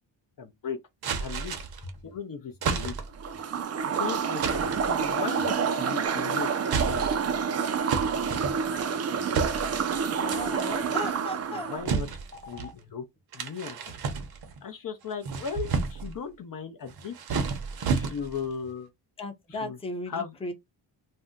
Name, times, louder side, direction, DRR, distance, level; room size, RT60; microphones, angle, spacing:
voice 1, 0.4-0.8 1.2-1.6 2.0-3.0 3.8-6.5 6.8-7.3 11.5-12.1 12.5-13.0 13.3-13.9 14.6-17.1 17.9-18.9 19.6-19.8 20.1-20.3, left 6 dB, 50° left, 0.6 m, -37 dB
sound 1, 1.0-1.9 2.6-3.3 4.4-4.9 5.8-6.2 6.6-7.3 7.9-8.9 9.3-10.0 10.3-10.7 11.8-12.7 13.3-14.6 15.1-16.2 16.9-18.5, right 5 dB, 55° right, 0.8 m, -31 dB
sound 2, 3.2-11.8, right 6 dB, 35° right, 0.4 m, -28 dB
Stream, 7.5-7.6 8.7-8.8 9.9-10.0 11.1-11.2 12.3-12.7, left 5 dB, 30° left, 1.3 m, -43 dB
voice 2, 10.2-11.8 19.2-20.5, left 1 dB, 15° left, 0.7 m, -36 dB
2.6 x 2.2 x 3.7 m
wide cardioid pair, 130°, 45 cm